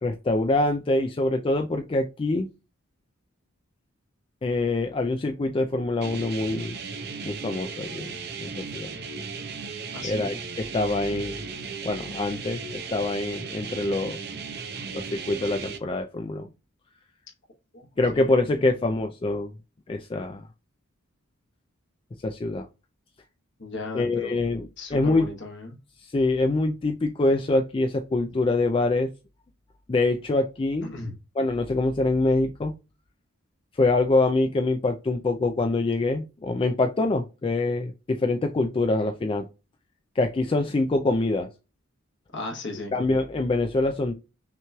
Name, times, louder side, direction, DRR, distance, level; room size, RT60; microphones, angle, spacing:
voice 1, 0.0-2.5 4.4-6.8 7.2-8.9 10.0-11.4 11.8-14.2 14.9-16.5 18.0-19.5 19.9-20.5 22.2-22.7 23.9-25.3 26.0-29.1 29.9-30.9 31.4-32.7 33.7-39.5 40.2-41.5 42.9-44.1, left 2 dB, 25° left, 0.3 m, -25 dB
sound 1, 6.0-15.8, right 5 dB, 50° right, 0.6 m, -36 dB
voice 2, 9.9-10.4 17.7-18.4 23.6-24.4 24.8-25.8 30.9-31.1 42.3-42.9, left 2 dB, 55° left, 1.1 m, -36 dB
5.7 x 3.0 x 2.3 m
head